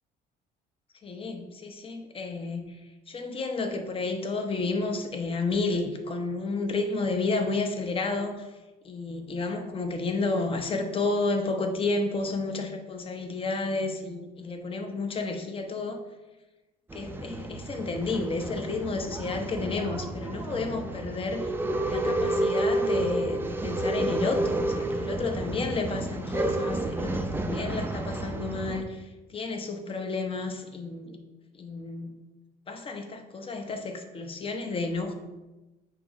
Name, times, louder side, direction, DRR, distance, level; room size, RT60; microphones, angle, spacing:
voice 1, 1.0-2.8 3.1-8.4 8.8-16.0 16.9-21.5 21.9-31.2 31.6-32.1 32.7-35.1, left 3 dB, 30° left, 5 dB, 0.8 m, -31 dB
Male speech man speaking / Chatter / Rattle, 16.9-28.8, right 1 dB, 15° right, 0.5 m, -30 dB
6.6 x 3.0 x 4.9 m, 1.1 s
cardioid pair, 110°, 17 cm